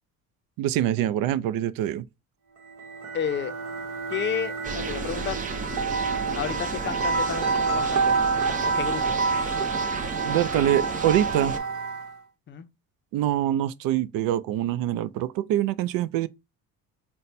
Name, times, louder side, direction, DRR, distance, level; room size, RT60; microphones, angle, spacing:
voice 1, 0.6-2.0 10.2-11.6 13.1-16.3, right 12 dB, 75° right, 0.5 m, -24 dB
sound 1, 2.7-12.2, right 4 dB, 60° right, 1.0 m, -28 dB
voice 2, 3.1-3.5 4.1-5.4 6.4-8.2 8.6-9.1 12.5-12.7, left 8 dB, 35° left, 0.5 m, -31 dB
sound 2, 4.6-11.6, right 5 dB, 25° right, 0.4 m, -33 dB
4.0 x 2.2 x 4.3 m
cardioid pair, 140°, 34 cm